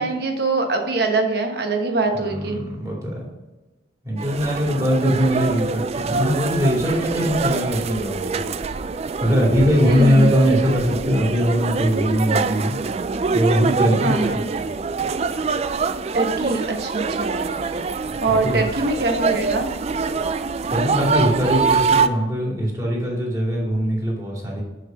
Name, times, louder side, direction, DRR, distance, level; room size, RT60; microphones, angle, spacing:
voice 1, 0.0-2.6 9.8-10.3 14.0-14.4 16.1-17.4 18.2-19.7, right 3 dB, 60° right, 4 dB, 1.2 m, -23 dB
voice 2, 2.1-3.2 4.0-8.4 9.2-12.7 13.3-14.2 14.6-14.7 18.3-18.7 20.7-24.6, equal, 20° right, -3 dB, 2.5 m, -21 dB
sound 1, 4.2-22.1, right 4 dB, 35° right, 0.3 m, -24 dB
6.5 x 6.4 x 5.9 m, 1.1 s
head